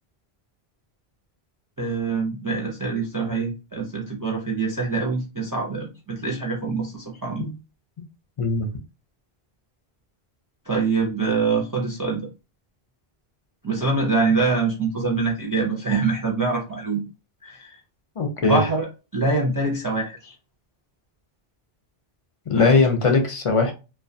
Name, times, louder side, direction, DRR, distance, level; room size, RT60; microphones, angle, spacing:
voice 1, 1.8-7.4 10.7-12.3 13.6-17.0 17.4-17.8 18.5-18.9 19.1-20.3 22.6-22.7, right 3 dB, 30° right, -1 dB, 0.3 m, -24 dB
voice 2, 18.2-18.6 22.5-23.7, left 3 dB, 50° left, 4 dB, 0.4 m, -19 dB
2.3 x 2.1 x 2.6 m, 0.30 s
omnidirectional pair, 1.1 m